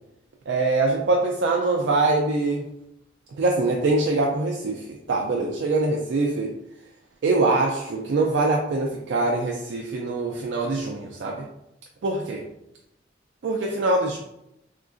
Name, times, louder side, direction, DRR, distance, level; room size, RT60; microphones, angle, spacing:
voice 1, 0.5-2.7 3.4-6.5 7.2-11.5 12.0-12.4 13.4-14.2, right 2 dB, 70° right, 0 dB, 0.3 m, -23 dB
3.6 x 2.3 x 2.5 m, 0.83 s
head